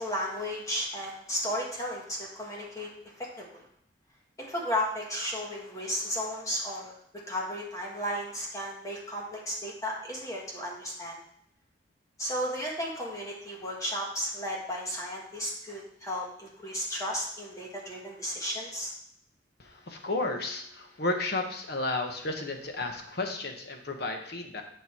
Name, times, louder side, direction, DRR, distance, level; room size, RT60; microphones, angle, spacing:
voice 1, 0.0-2.9 3.2-3.6 4.4-6.9 7.3-11.2 12.2-18.9, equal, 20° left, -2 dB, 1.5 m, -34 dB
voice 2, 19.6-24.6, left 2 dB, 60° left, 4 dB, 1.2 m, -33 dB
8.6 x 5.3 x 4.5 m, 0.66 s
head